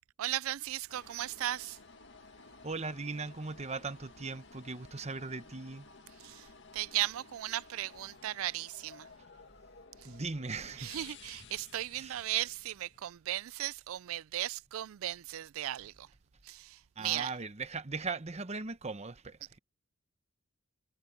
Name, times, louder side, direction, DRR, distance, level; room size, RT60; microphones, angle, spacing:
voice 1, 0.2-1.8 6.2-6.5 6.7-9.1 10.0-10.1 10.8-16.1 16.4-17.3, right 14 dB, 80° right, 0.4 m, -36 dB
sound 1, 0.9-13.1, left 4 dB, 60° left, 1.9 m, -55 dB
voice 2, 2.6-5.9 10.0-10.9 12.0-12.2 17.0-19.6, right 4 dB, 30° right, 0.9 m, -39 dB
head